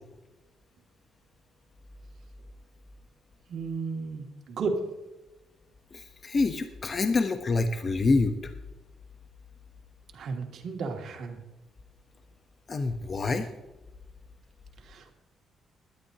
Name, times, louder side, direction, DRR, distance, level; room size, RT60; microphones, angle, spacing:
voice 1, 3.5-4.8 10.1-11.4 14.8-15.1, right 4 dB, 65° right, 2 dB, 2.4 m, -34 dB
voice 2, 5.9-8.5 12.7-13.5, left 3 dB, 35° left, 7 dB, 0.9 m, -26 dB
20.5 x 11.5 x 2.9 m, 1.1 s
cardioid pair, 90°, 0 cm